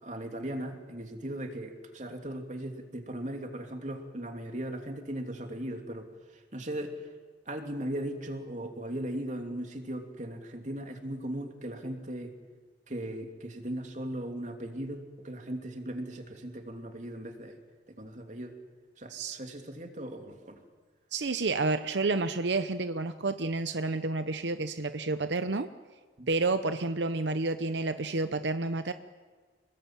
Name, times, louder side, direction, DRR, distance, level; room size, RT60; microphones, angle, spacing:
voice 1, 0.0-7.1 7.5-12.3 12.9-17.6 17.9-18.6 19.0-20.6 26.2-26.3, right 1 dB, 45° right, 4 dB, 3.0 m, -38 dB
voice 2, 21.1-25.7 26.3-28.9, right 3 dB, 85° right, 10 dB, 0.9 m, -30 dB
27.0 x 21.0 x 9.0 m, 1.5 s
head